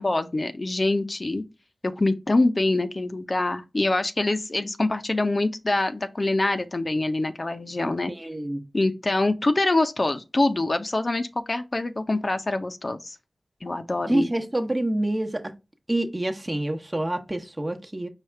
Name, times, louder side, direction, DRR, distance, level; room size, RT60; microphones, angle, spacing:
voice 1, 0.0-1.4 1.8-8.1 8.7-13.2 13.6-14.3, left 2 dB, 50° left, 0.5 m, -25 dB
voice 2, 8.2-8.6 14.1-15.4 15.9-18.1, right 1 dB, 30° right, 0.9 m, -27 dB
4.9 x 2.4 x 4.3 m
cardioid pair, 45°, 0 cm